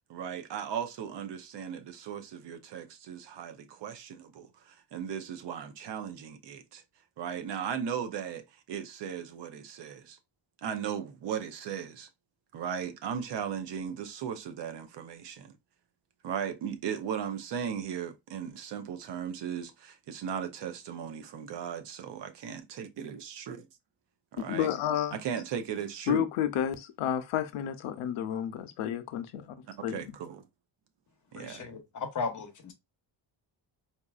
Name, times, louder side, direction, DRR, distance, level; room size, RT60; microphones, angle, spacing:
voice 1, 0.1-6.8 7.2-10.2 10.6-12.1 12.5-15.5 16.2-23.7 24.3-24.7 25.1-26.3 29.9-30.4 31.3-31.6, right 8 dB, 60° right, 0.7 m, -37 dB
voice 2, 24.4-25.2 26.1-29.6 29.8-30.2, left 10 dB, 80° left, 0.7 m, -31 dB
voice 3, 31.4-32.7, left 4 dB, 40° left, 0.9 m, -36 dB
4.3 x 2.6 x 2.4 m
cardioid pair, 165°, 49 cm